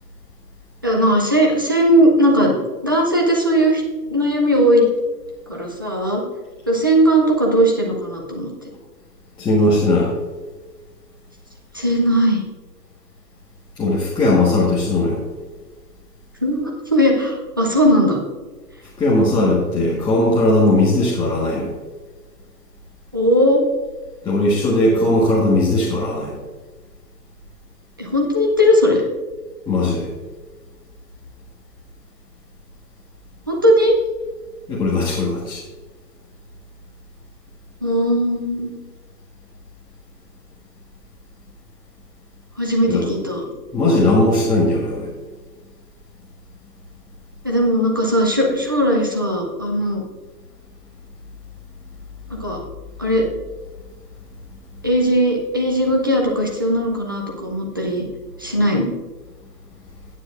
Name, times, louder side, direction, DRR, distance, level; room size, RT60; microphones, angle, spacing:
voice 1, 0.8-2.6 2.8-3.8 4.1-4.9 5.5-6.2 6.7-8.5 11.7-12.4 16.4-18.2 23.1-23.7 28.0-29.0 33.5-33.9 37.8-38.7 42.6-43.4 47.4-50.0 52.3-52.6 53.0-53.2 54.8-58.1 58.4-58.9, equal, 15° right, -1 dB, 0.4 m, -18 dB
voice 2, 9.4-10.1 13.8-15.2 19.0-21.7 24.2-26.3 29.7-30.1 34.7-35.6 42.9-43.1 43.7-45.1, left 2 dB, 10° left, -7 dB, 1.3 m, -18 dB
16.0 x 9.1 x 2.4 m, 1.3 s
hypercardioid pair, 145°, 49 cm